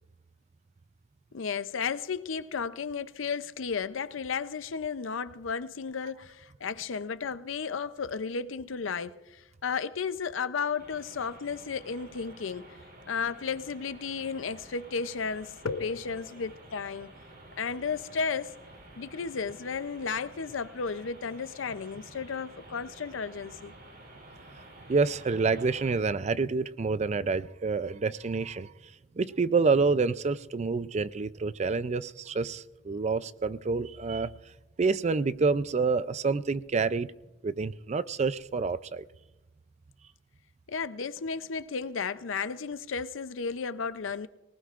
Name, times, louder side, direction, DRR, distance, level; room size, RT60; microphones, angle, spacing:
voice 1, 1.3-12.6 13.1-17.1 17.6-18.5 19.0-23.7 40.7-44.3, left 5 dB, 80° left, 0.6 m, -33 dB
sound 1, 10.8-25.9, right 1 dB, 55° right, 4.6 m, -51 dB
voice 2, 24.9-28.7 29.2-34.3 34.8-37.1 37.4-39.0, right 4 dB, 35° right, 0.4 m, -28 dB
23.5 x 19.0 x 2.5 m
head